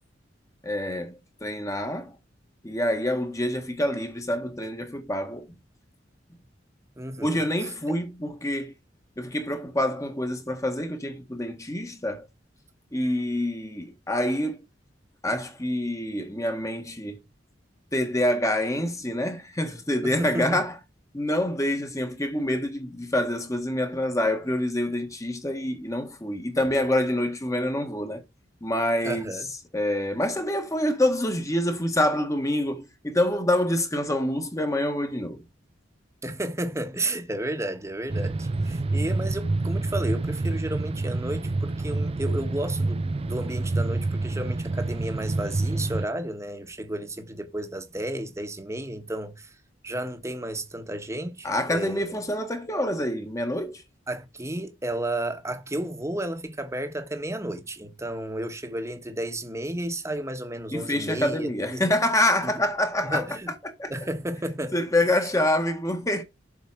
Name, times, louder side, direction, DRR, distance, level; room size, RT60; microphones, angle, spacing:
voice 1, 0.6-2.1 2.6-5.5 7.2-8.7 9.2-12.3 12.9-14.6 15.2-17.2 17.9-20.7 21.1-28.2 28.6-29.3 29.7-35.4 51.4-53.8 60.7-63.2 63.6-63.9 64.7-66.2, left 1 dB, 15° left, 1.6 m, -26 dB
voice 2, 7.0-7.7 20.0-20.6 29.0-29.5 36.2-49.5 49.8-52.1 54.1-61.8 62.4-62.5 63.0-63.5 63.9-64.8, right 1 dB, 15° right, 1.5 m, -32 dB
sound 1, 38.1-46.1, right 2 dB, 30° right, 0.5 m, -27 dB
7.4 x 5.1 x 7.3 m
head